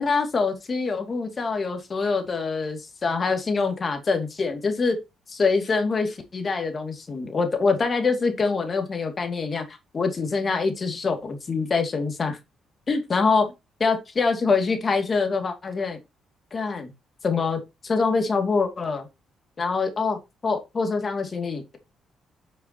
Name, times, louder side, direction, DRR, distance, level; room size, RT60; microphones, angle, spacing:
voice 1, 0.0-5.0 5.3-12.4 12.9-13.4 13.8-16.0 16.5-16.9 17.2-19.1 19.6-21.8, left 4 dB, 40° left, 2.5 m, -25 dB
10.0 x 6.5 x 3.0 m
cardioid pair, 90°, 0 cm